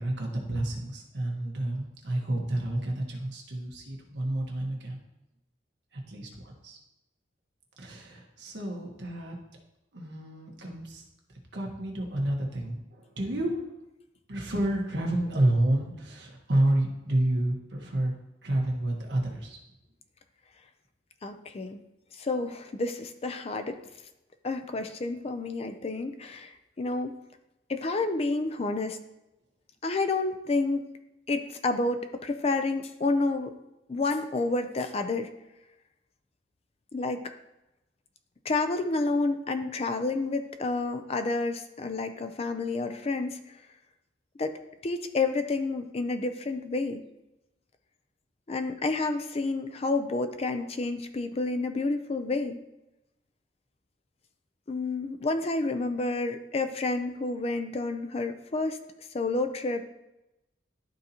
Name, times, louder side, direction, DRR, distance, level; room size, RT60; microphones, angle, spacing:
voice 1, 0.0-5.0 5.9-6.8 7.8-9.4 9.9-11.0 11.5-13.7 14.3-18.1 18.4-19.6, right 1 dB, 65° right, 0 dB, 1.3 m, -29 dB
voice 2, 21.2-21.8 22.1-23.8 24.4-27.1 27.7-29.0 29.8-30.9 31.3-33.6 33.9-35.3 36.9-37.3 38.4-43.5 44.4-44.6 44.8-47.0 48.5-52.6 54.7-58.8 59.1-59.8, left 3 dB, 35° left, 8 dB, 0.4 m, -29 dB
12.0 x 4.0 x 2.9 m, 0.93 s
head